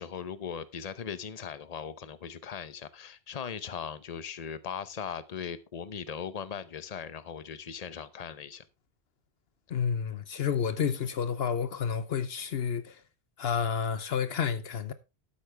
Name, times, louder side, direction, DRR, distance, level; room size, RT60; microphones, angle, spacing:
voice 1, 0.0-8.6 10.4-10.5, left 7 dB, 40° left, 0.9 m, -39 dB
voice 2, 9.7-13.0 13.4-14.9, left 7 dB, 70° left, 1.0 m, -30 dB
12.5 x 8.7 x 3.4 m
omnidirectional pair, 1.1 m